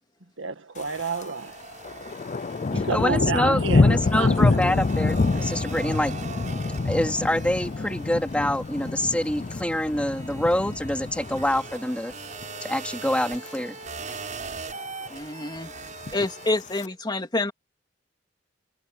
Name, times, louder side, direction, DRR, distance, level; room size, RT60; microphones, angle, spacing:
voice 1, 0.4-1.6 2.7-4.6, right 4 dB, 90° right, 1.9 m, -30 dB
Thunder, 0.8-1.3 1.6-11.9 12.3-12.7 13.1-13.6 13.8-13.9 14.1-14.2 14.6-15.1 15.9-16.9, left 3 dB, 40° left, 0.5 m, -26 dB
sound 1, 0.8-3.3 3.7-16.5, right 5 dB, 40° right, 7.5 m, -41 dB
voice 2, 2.9-6.3 6.5-12.1 12.6-13.8, left 1 dB, 5° left, 2.8 m, -26 dB
voice 3, 15.1-15.7 16.1-17.5, left 2 dB, 25° left, 2.6 m, -27 dB
head